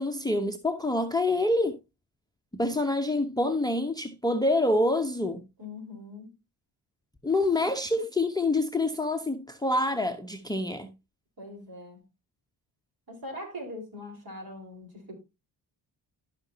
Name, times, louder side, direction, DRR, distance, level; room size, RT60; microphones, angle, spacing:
voice 1, 0.0-1.8 2.5-5.4 7.2-10.9, left 2 dB, 10° left, 0.9 m, -26 dB
voice 2, 5.6-6.3 11.4-12.0 13.1-15.2, left 1 dB, 45° right, 4.6 m, -41 dB
12.5 x 5.9 x 2.8 m
supercardioid pair, 55°, 49 cm